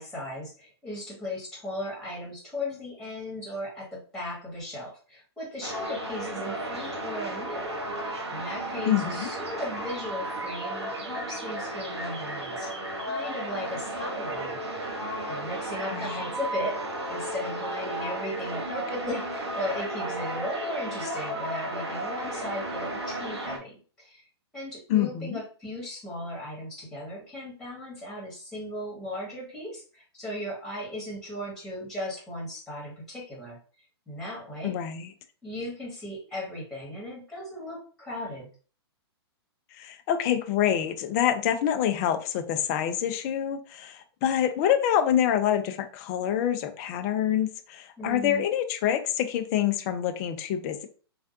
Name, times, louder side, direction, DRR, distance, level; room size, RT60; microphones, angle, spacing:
voice 1, 0.0-7.7 8.0-12.7 13.0-14.6 15.3-24.2 24.5-33.6 34.1-34.8 35.4-38.5 48.0-48.4, left 1 dB, 5° left, -4 dB, 1.7 m, -37 dB
sound 1, 5.6-23.6, right 1 dB, 80° right, 1.1 m, -34 dB
voice 2, 8.9-9.3 15.9-16.2 24.9-25.4 34.6-35.1 39.8-50.9, left 10 dB, 40° left, 8 dB, 0.5 m, -26 dB
3.3 x 2.4 x 2.6 m, 0.38 s
hypercardioid pair, 120°, 14 cm